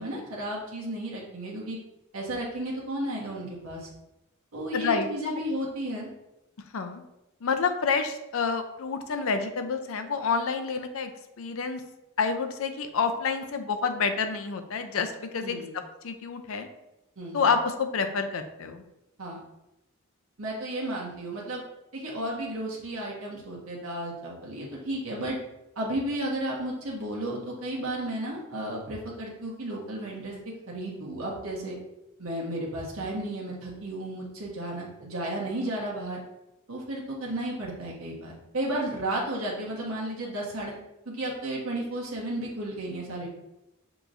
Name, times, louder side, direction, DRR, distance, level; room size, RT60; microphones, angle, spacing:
voice 1, 0.0-1.8 2.1-3.9 4.5-6.1 15.4-15.7 17.2-17.4 19.2-19.4 20.4-21.6 21.9-25.4 25.8-30.3 30.7-31.8 32.2-36.2 36.7-40.8 41.0-43.3, right 1 dB, 80° right, -3 dB, 1.2 m, -33 dB
voice 2, 4.7-5.4 6.7-7.0 7.4-11.1 11.4-11.8 12.2-15.6 16.0-16.7 17.3-18.8, left 5 dB, 70° left, 7 dB, 0.5 m, -28 dB
6.8 x 3.0 x 2.6 m, 0.91 s
head